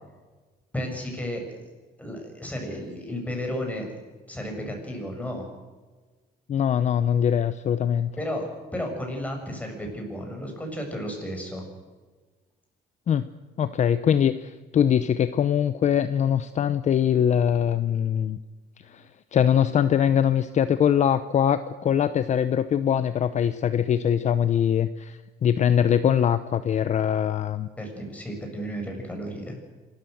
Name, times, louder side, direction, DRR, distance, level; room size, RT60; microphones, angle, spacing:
voice 1, 0.7-1.7 2.0-4.0 4.3-5.5 8.2-11.6 27.8-29.6, equal, 10° left, 2 dB, 6.5 m, -33 dB
voice 2, 6.5-8.1 13.1-13.2 13.6-18.4 18.8-27.7, left 9 dB, 45° left, 12 dB, 0.8 m, -22 dB
26.5 x 13.5 x 7.9 m, 1.3 s
cardioid pair, 110°, 17 cm